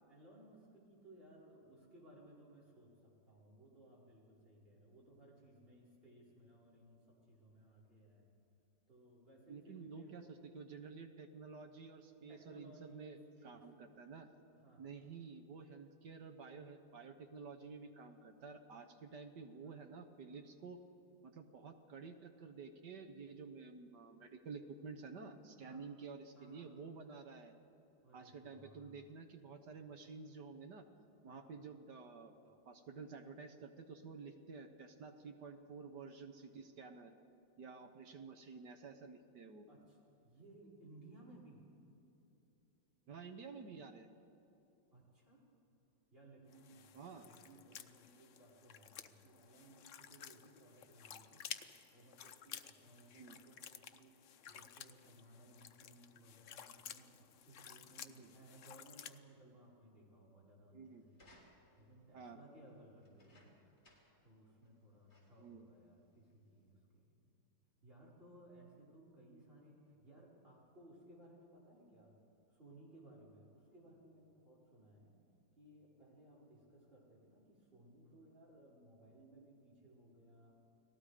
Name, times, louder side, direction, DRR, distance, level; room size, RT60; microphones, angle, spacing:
voice 1, 0.1-8.3 8.9-10.3 12.3-14.0 14.5-14.9 19.6-19.8 25.6-25.8 26.3-26.7 28.0-29.0 31.3-31.4 39.7-40.0 40.2-41.6 44.9-45.4 46.1-51.4 51.9-54.1 54.5-57.1 57.4-61.3 61.8-63.5 64.2-67.3 67.8-72.2 72.5-75.2 75.6-80.6, right 1 dB, 30° right, -5 dB, 5.2 m, -61 dB
voice 2, 9.5-14.3 14.8-20.8 21.2-27.5 28.1-30.8 31.2-37.1 37.6-39.7 43.1-44.1 46.9-47.3 53.1-53.4 58.1-58.3 60.7-61.1 62.1-62.4 65.4-65.7, right 5 dB, 65° right, 6 dB, 1.7 m, -51 dB
sound 1, 46.5-59.2, left 9 dB, 60° left, 0.8 m, -54 dB
sound 2, 61.1-61.9 63.0-64.3 64.6-64.7 65.1-65.5 66.3-66.4, left 2 dB, 35° left, 3.8 m, -67 dB
30.0 x 19.5 x 5.0 m, 2.9 s
omnidirectional pair, 2.1 m